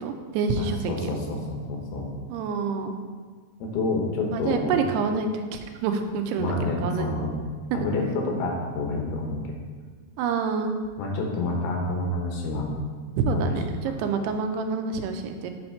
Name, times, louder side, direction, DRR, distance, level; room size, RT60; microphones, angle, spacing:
voice 1, 0.0-1.1 2.3-3.0 4.3-7.1 7.7-7.9 10.2-10.8 13.2-15.5, right 5 dB, 90° right, 6 dB, 2.6 m, -27 dB
voice 2, 0.5-2.0 3.7-4.9 6.4-7.3 7.7-9.4 11.0-12.7 13.3-13.5, left 2 dB, 75° left, 0 dB, 2.9 m, -28 dB
7.7 x 4.3 x 4.4 m, 1.5 s
omnidirectional pair, 4.6 m